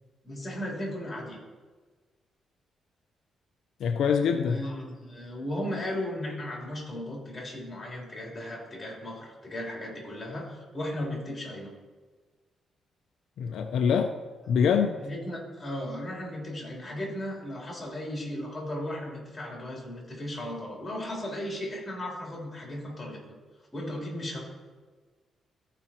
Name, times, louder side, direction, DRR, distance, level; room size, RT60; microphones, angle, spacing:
voice 1, 0.2-1.4 4.2-11.7 15.0-23.2 23.7-24.4, left 1 dB, 20° left, -2 dB, 3.1 m, -36 dB
voice 2, 3.8-4.7 13.4-14.1 14.5-15.0, left 6 dB, 75° left, 5 dB, 0.5 m, -24 dB
14.0 x 5.0 x 4.3 m, 1.4 s
cardioid pair, 130°, 0 cm